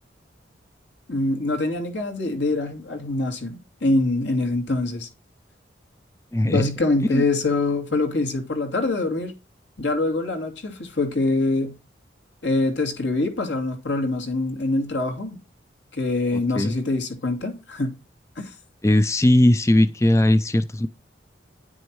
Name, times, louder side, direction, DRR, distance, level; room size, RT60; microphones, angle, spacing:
voice 1, 1.1-5.1 6.5-9.3 9.8-11.8 12.4-15.4 15.9-18.0 18.4-18.5, left 2 dB, 75° left, 2.5 m, -24 dB
voice 2, 6.3-6.7 7.1-7.2 16.5-16.8 18.8-20.9, left 1 dB, 15° left, 0.4 m, -18 dB
10.5 x 6.2 x 4.7 m
head